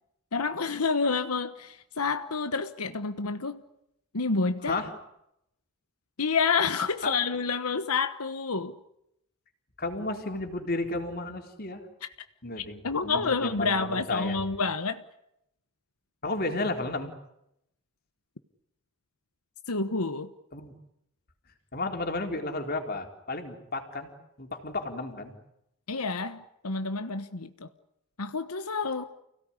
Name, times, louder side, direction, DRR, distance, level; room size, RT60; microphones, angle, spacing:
voice 1, 0.3-3.6 4.1-4.8 6.2-8.8 12.8-15.0 19.7-20.3 25.9-27.7 28.2-29.1, left 4 dB, 90° left, 1.2 m, -29 dB
voice 2, 9.8-11.9 12.4-14.4 16.2-17.1 20.5-20.7 21.7-24.1 24.4-25.4, left 2 dB, 45° left, 4.0 m, -33 dB
29.5 x 17.5 x 9.9 m
head